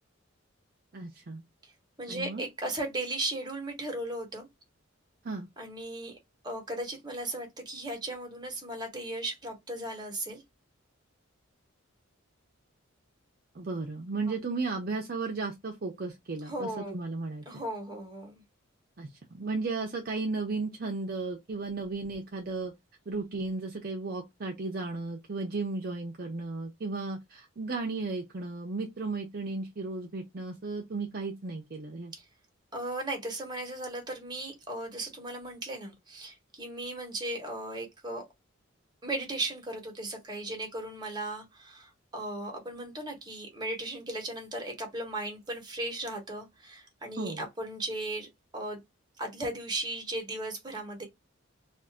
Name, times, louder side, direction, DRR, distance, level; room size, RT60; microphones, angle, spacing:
voice 1, 0.9-1.4 2.1-2.4 5.2-5.5 13.5-17.4 19.0-22.7 23.1-32.1 47.2-47.4, right 3 dB, 45° right, 0.5 m, -35 dB
voice 2, 2.0-4.5 5.6-6.2 6.4-10.4 16.5-17.0 17.5-18.4 32.2-32.3 32.7-38.2 39.0-48.3 48.5-48.8 49.2-51.0, right 2 dB, 20° right, 1.1 m, -36 dB
2.6 x 2.4 x 3.4 m
head